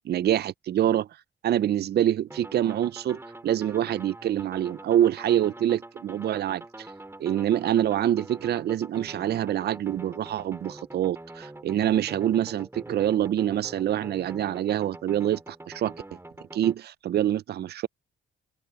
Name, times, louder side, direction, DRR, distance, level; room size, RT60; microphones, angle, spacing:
voice 1, 0.1-1.1 1.4-3.2 3.4-6.6 7.2-15.9 16.5-17.9, right 11 dB, 55° right, 0.6 m, -25 dB
sound 1, 2.3-16.7, right 2 dB, 10° right, 3.3 m, -45 dB
open air
cardioid pair, 90°, 20 cm